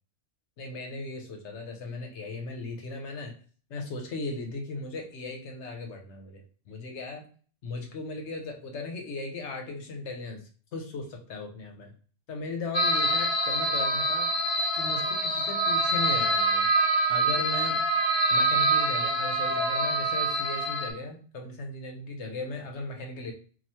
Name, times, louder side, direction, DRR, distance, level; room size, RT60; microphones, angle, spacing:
voice 1, 0.6-3.3 3.7-7.2 7.6-10.4 10.7-11.9 12.3-14.3 14.7-16.7 17.1-17.8 18.3-23.3, left 3 dB, 75° left, 3 dB, 1.1 m, -37 dB
sound 1, 12.7-20.9, right 1 dB, 35° left, 0.5 m, -25 dB
3.0 x 2.3 x 4.1 m, 0.43 s
omnidirectional pair, 1.2 m